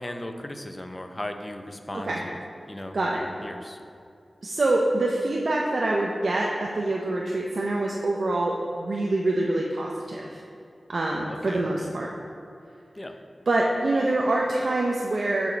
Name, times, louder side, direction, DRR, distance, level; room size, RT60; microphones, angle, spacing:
voice 1, 0.0-2.4 2.7-3.8 11.3-11.9 12.9-13.1, left 1 dB, 25° left, 6 dB, 0.5 m, -37 dB
voice 2, 4.4-10.4 10.9-12.1 13.5-15.5, right 2 dB, 65° right, -2 dB, 0.5 m, -25 dB
6.9 x 4.8 x 3.9 m, 2.4 s
wide cardioid pair, 60°, 0 cm